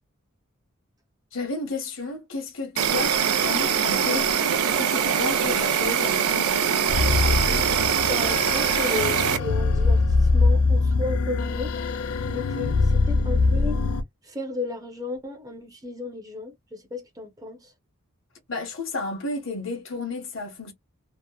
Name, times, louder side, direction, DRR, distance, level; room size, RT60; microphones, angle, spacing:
voice 1, 1.3-4.3 4.8-6.9 18.5-20.7, left 3 dB, 60° left, 0.9 m, -32 dB
Insect, 2.8-9.4, right 8 dB, 85° right, 0.5 m, -23 dB
sound 1, 6.9-14.0, left 3 dB, 80° left, 0.4 m, -23 dB
voice 2, 8.1-11.8 12.3-13.9 14.2-17.7, left 3 dB, 15° right, 0.6 m, -34 dB
2.9 x 2.1 x 2.2 m
head